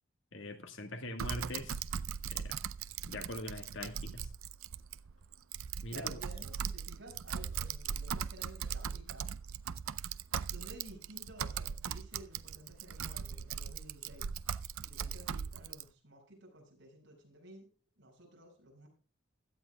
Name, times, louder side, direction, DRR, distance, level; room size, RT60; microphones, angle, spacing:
voice 1, 0.3-1.8 2.2-2.6 3.0-4.3 5.8-6.2, left 1 dB, 65° left, 1.7 m, -42 dB
Typing, 1.2-15.8, right 7 dB, 80° right, 0.5 m, -39 dB
voice 2, 5.9-9.3 10.5-14.3 14.8-17.7 18.0-18.9, right 1 dB, 60° right, 6.4 m, -53 dB
17.0 x 12.5 x 2.3 m
head